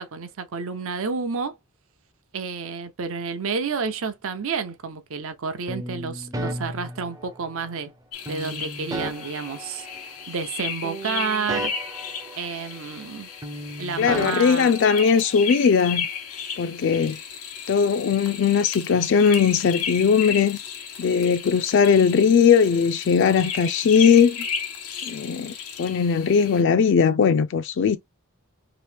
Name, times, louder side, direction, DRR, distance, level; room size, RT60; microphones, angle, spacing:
voice 1, 0.0-1.6 2.3-7.9 8.3-9.9 10.3-11.7 12.4-13.3 13.8-14.7, right 5 dB, 65° right, 0.6 m, -30 dB
sound 1, 5.7-7.7 8.3-10.6 10.8-13.2 13.4-15.5, right 1 dB, 15° right, 0.5 m, -35 dB
sound 2, 8.1-26.6, left 7 dB, 90° left, 1.1 m, -34 dB
voice 2, 14.0-16.1 16.6-17.2 17.7-20.6 21.0-24.4 25.0-28.0, left 6 dB, 55° left, 0.3 m, -19 dB
3.0 x 2.8 x 3.3 m
head